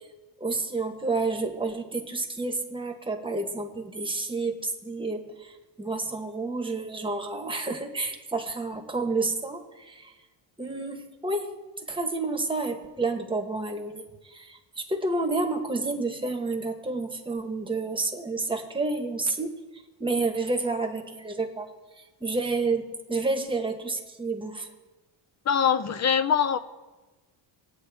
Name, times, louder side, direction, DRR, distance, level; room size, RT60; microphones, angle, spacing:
voice 1, 0.4-10.1 10.6-11.5 11.9-19.6 20.0-21.7 22.0-24.7, right 3 dB, 10° right, 3 dB, 1.0 m, -30 dB
voice 2, 25.5-26.6, left 7 dB, 35° left, 12 dB, 0.4 m, -23 dB
20.0 x 8.7 x 3.4 m, 1.2 s
cardioid pair, 160°, 47 cm